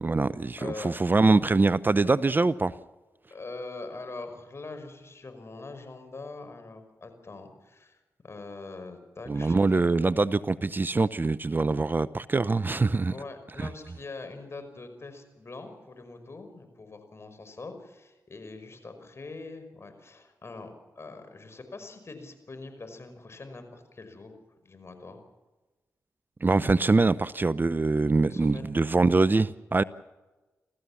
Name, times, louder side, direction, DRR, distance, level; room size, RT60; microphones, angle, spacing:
voice 1, 0.0-2.8 9.3-13.1 13.6-13.7 26.4-29.8, right 3 dB, 30° right, 0.7 m, -24 dB
voice 2, 0.6-0.9 3.3-9.9 13.1-25.2 28.2-28.7, left 3 dB, 45° left, 5.2 m, -43 dB
28.5 x 14.5 x 7.3 m
supercardioid pair, 45°, 6 cm